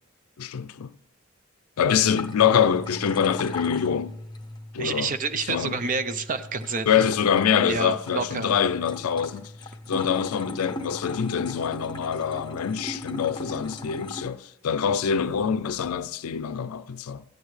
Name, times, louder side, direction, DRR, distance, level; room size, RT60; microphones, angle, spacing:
voice 1, 0.4-0.9 1.8-4.2 4.7-5.1 5.5-5.8 6.9-9.5 9.9-17.2, left 7 dB, 90° left, 0.4 m, -25 dB
sound 1, 1.9-14.3, left 2 dB, 20° left, 0.7 m, -38 dB
voice 2, 4.8-7.0 7.6-8.6, right 4 dB, 40° right, 0.6 m, -29 dB
16.0 x 10.0 x 3.2 m
head